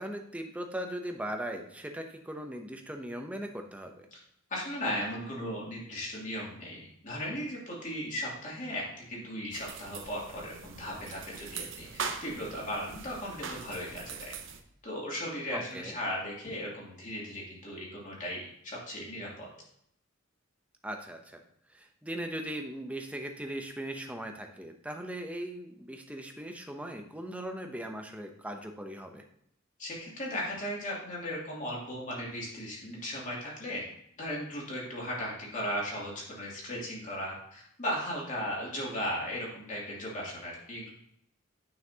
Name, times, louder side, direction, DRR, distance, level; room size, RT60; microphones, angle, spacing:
voice 1, 0.0-4.1 15.5-15.9 20.8-21.4 21.7-29.2, right 1 dB, 5° right, 4 dB, 0.7 m, -39 dB
voice 2, 4.5-14.3 14.8-19.5 29.8-33.8 34.2-40.9, equal, 40° left, -4 dB, 2.5 m, -37 dB
sound 1, 9.5-14.6, right 5 dB, 65° right, 0.8 m, -41 dB
9.3 x 5.8 x 2.8 m, 0.71 s
head